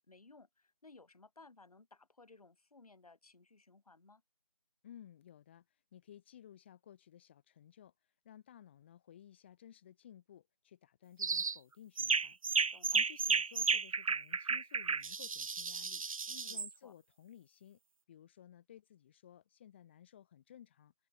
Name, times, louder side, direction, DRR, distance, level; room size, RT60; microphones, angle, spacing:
voice 1, 0.0-4.2 12.7-13.0 16.3-16.9, left 3 dB, 75° left, 4.4 m, -60 dB
voice 2, 4.8-16.0 16.5-17.8 18.1-20.9, left 10 dB, 20° left, 3.0 m, -57 dB
sound 1, 11.2-11.6 12.0-16.7, right 5 dB, 65° right, 0.8 m, -33 dB
figure-of-eight pair, 175°, 19 cm